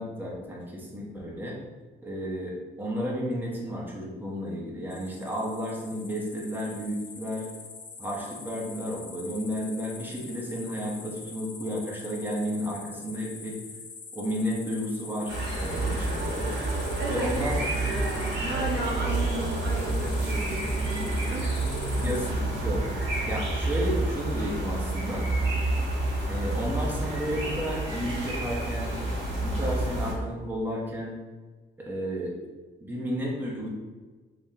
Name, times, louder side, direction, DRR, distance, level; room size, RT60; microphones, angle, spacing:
voice 1, 0.0-1.6 2.0-7.5 8.0-13.5 14.1-16.5 17.1-17.6 22.0-22.8 23.2-25.3 26.3-28.9 29.3-31.1 31.8-32.3 32.8-33.7, equal, 10° right, -4 dB, 0.8 m, -32 dB
sound 1, 4.9-22.3, left 5 dB, 40° left, 0.6 m, -45 dB
sound 2, 15.3-30.1, right 2 dB, 75° right, 1.4 m, -29 dB
sound 3, 15.7-23.7, right 2 dB, 40° right, 0.7 m, -37 dB
voice 2, 17.0-22.2 23.2-23.4 25.7-25.9, right 1 dB, 60° right, -2 dB, 0.9 m, -35 dB
3.6 x 2.9 x 2.8 m, 1.4 s
cardioid pair, 90°, 20 cm